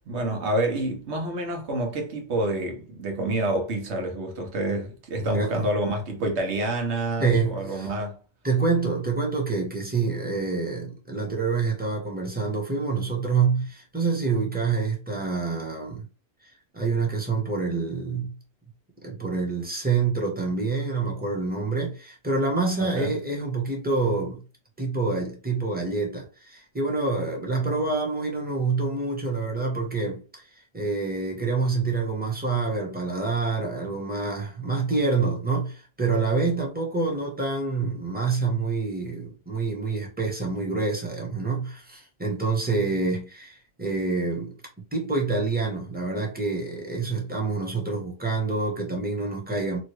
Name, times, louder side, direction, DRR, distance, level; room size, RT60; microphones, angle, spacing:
voice 1, 0.1-8.2 22.8-23.1, right 1 dB, 80° right, 1.2 m, -28 dB
voice 2, 5.2-5.6 7.2-7.9 8.4-16.0 16.4-18.3 19.0-24.4 24.8-30.2 30.7-44.5 44.9-49.8, right 4 dB, 10° right, 0.7 m, -27 dB
2.9 x 2.3 x 3.0 m
omnidirectional pair, 1.1 m